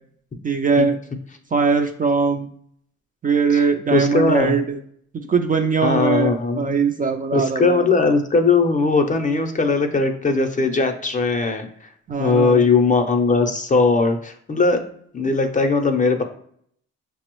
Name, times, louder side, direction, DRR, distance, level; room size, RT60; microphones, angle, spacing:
voice 1, 0.4-1.0 1.5-2.5 3.2-4.8 5.3-7.9 12.1-12.6, right 5 dB, 30° right, 5 dB, 0.4 m, -20 dB
voice 2, 3.5-4.6 5.8-6.8 7.3-11.7 12.2-14.8 15.1-16.2, left 4 dB, 25° left, 6 dB, 0.6 m, -19 dB
5.8 x 2.0 x 3.0 m, 0.65 s
cardioid pair, 90°, 30 cm